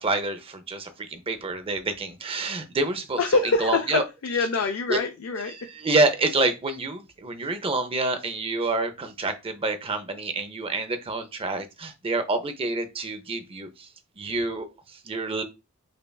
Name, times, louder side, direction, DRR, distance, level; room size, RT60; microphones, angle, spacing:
voice 1, 0.0-3.2 3.6-4.0 4.9-5.0 5.5-13.9 14.2-15.4, right 2 dB, 25° right, 0.5 m, -27 dB
voice 2, 3.2-5.5, left 4 dB, 75° left, 0.5 m, -25 dB
5.2 x 2.4 x 2.2 m
head